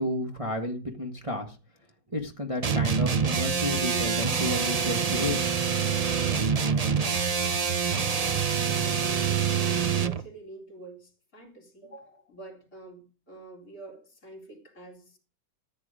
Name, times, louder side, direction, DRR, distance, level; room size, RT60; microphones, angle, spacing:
voice 1, 0.0-1.6 2.1-5.5, left 1 dB, 20° right, 1.6 m, -31 dB
sound 1, 2.6-10.2, right 6 dB, 55° right, 0.4 m, -26 dB
voice 2, 8.6-15.2, right 2 dB, 50° left, 4.2 m, -47 dB
14.5 x 9.5 x 5.1 m
omnidirectional pair, 1.9 m